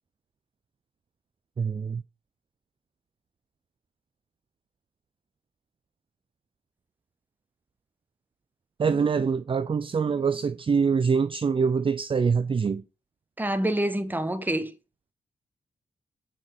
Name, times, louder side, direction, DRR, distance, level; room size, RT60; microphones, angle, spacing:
voice 1, 1.6-2.0 8.8-12.8, right 5 dB, 35° right, 0.4 m, -24 dB
voice 2, 13.4-14.7, right 1 dB, 10° right, 1.2 m, -27 dB
6.3 x 4.4 x 5.9 m
cardioid pair, 55°, 15 cm